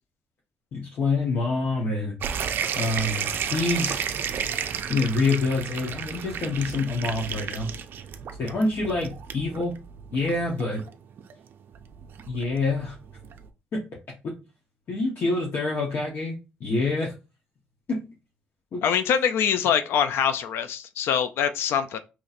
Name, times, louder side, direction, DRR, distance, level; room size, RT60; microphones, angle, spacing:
voice 1, 0.7-2.1 2.8-4.0 4.9-7.7 8.4-9.7 10.1-10.8 12.3-12.9 13.7-13.8 14.2-14.3 14.9-17.1 17.9-18.0 18.7-18.8, left 3 dB, 55° left, 0.9 m, -26 dB
sound 1, 2.2-13.5, right 8 dB, 60° right, 0.4 m, -33 dB
voice 2, 18.8-22.0, left 8 dB, 80° left, 0.3 m, -24 dB
4.1 x 2.9 x 2.5 m
cardioid pair, 125°, 4 cm